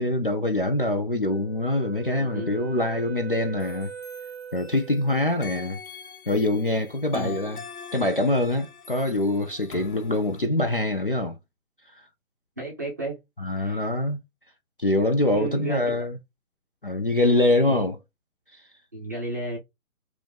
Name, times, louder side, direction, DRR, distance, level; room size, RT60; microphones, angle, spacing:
voice 1, 0.0-3.9 4.5-5.8 6.3-7.6 7.9-11.4 13.4-14.2 14.8-16.2 16.8-18.0 18.5-18.6, left 1 dB, 40° left, 0.4 m, -24 dB
Wind instrument woodwind instrument, 1.3-5.3, right 7 dB, 45° right, 0.7 m, -41 dB
voice 2, 2.1-2.5 7.1-7.4 12.6-13.2 13.6-13.9 15.3-16.0 17.6-17.9 18.9-19.6, right 2 dB, 15° right, 0.6 m, -33 dB
sound 1, 3.6-5.0 5.4-10.5, left 5 dB, 75° left, 0.7 m, -43 dB
3.6 x 3.1 x 3.4 m
figure-of-eight pair, 145°, 43 cm